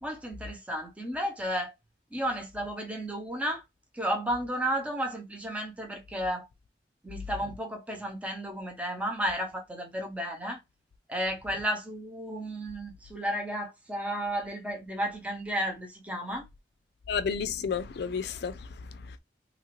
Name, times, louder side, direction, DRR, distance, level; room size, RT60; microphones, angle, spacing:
voice 1, 0.0-1.7 2.1-3.6 3.9-6.5 7.0-10.6 11.1-16.5, equal, 10° right, 0.7 m, -33 dB
voice 2, 17.1-19.2, left 6 dB, 65° left, 0.4 m, -32 dB
2.9 x 2.4 x 3.0 m
head